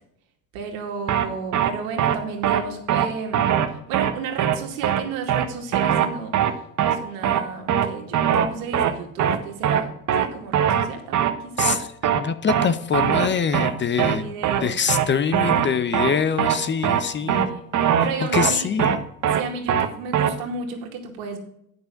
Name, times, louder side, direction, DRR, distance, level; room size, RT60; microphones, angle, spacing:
voice 1, 0.5-3.5 3.9-9.9 10.2-11.6 14.1-14.8 17.2-17.6 18.0-18.7 19.3-21.4, right 5 dB, 80° right, 2 dB, 2.3 m, -33 dB
sound 1, 1.1-1.3 1.5-1.7 2.0-2.2 2.4-2.6 2.9-3.1 3.3-3.7 3.9-4.1 4.4-4.6 4.8-5.0 5.3-5.5 5.7-6.1 6.3-6.5 6.8-7.0 7.2-7.4 7.7-7.9 8.1-8.5 8.7-8.9 9.2-9.4 9.6-9.8 10.1-10.3 10.5-10.9 11.1-11.3 11.6-11.8 12.0-12.2 12.5-12.7 12.9-13.3 13.5-13.7 14.0-14.2 14.4-14.6 14.9-15.1 15.3-15.7 15.9-16.1 16.4-16.6 16.8-17.0 17.3-17.5 17.7-18.1 18.3-18.5 18.8-19.0 19.2-19.4 19.7-19.9 20.1-20.3, right 9 dB, 45° right, 1.1 m, -20 dB
voice 2, 11.6-14.3 14.6-17.5 18.2-19.0, left 6 dB, 30° left, 13 dB, 0.7 m, -24 dB
8.8 x 6.3 x 5.7 m, 0.73 s
hypercardioid pair, 80°, 40 cm